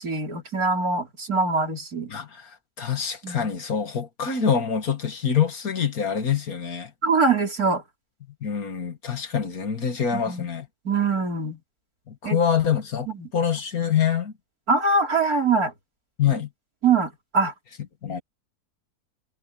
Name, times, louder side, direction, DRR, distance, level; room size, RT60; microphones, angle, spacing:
voice 1, 0.0-2.1 3.2-3.5 7.0-7.8 10.1-10.5 10.8-11.6 12.2-12.4 13.1-13.3 14.7-15.7 16.8-17.5, right 4 dB, 65° right, 4.2 m, -23 dB
voice 2, 2.1-6.9 8.4-10.7 12.1-13.1 13.3-14.3 16.2-16.5 18.0-18.2, left 7 dB, 65° left, 2.3 m, -25 dB
omnidirectional pair, 1.7 m